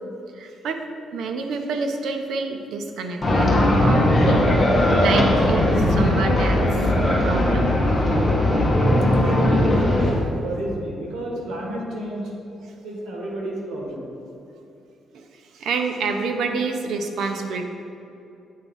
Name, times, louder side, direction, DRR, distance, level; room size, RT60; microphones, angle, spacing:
voice 1, 0.3-0.8 1.1-3.5 3.8-4.4 5.0-6.9 7.2-8.2 15.1-15.3 15.5-17.7, right 4 dB, 70° right, 5 dB, 0.6 m, -28 dB
sound 1, 3.2-10.1, left 1 dB, 25° left, 1.1 m, -18 dB
voice 2, 9.1-9.4 10.3-12.3 12.8-14.1, right 1 dB, 90° right, -2 dB, 1.5 m, -31 dB
8.3 x 3.0 x 5.4 m, 2.8 s
cardioid pair, 165°, 0 cm